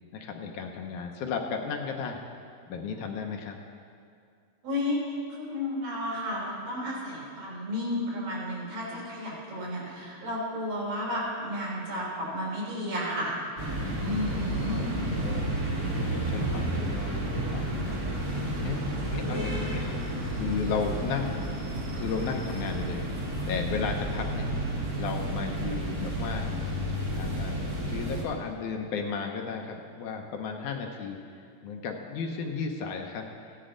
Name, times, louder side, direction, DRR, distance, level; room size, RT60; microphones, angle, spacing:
voice 1, 0.1-2.2 2.7-3.6 14.6-15.5 16.0-18.0 18.4-18.9 19.1-20.0 20.3-21.5 22.0-23.2 23.5-24.5 25.0-26.5 27.2-31.2 31.6-33.3, left 5 dB, 75° left, 2 dB, 2.0 m, -34 dB
voice 2, 4.6-5.0 5.4-14.8, left 1 dB, 85° right, -6 dB, 5.0 m, -32 dB
sound 1, 13.6-28.2, right 1 dB, 35° right, 1.6 m, -31 dB
16.0 x 10.0 x 3.8 m, 2.3 s
omnidirectional pair, 3.9 m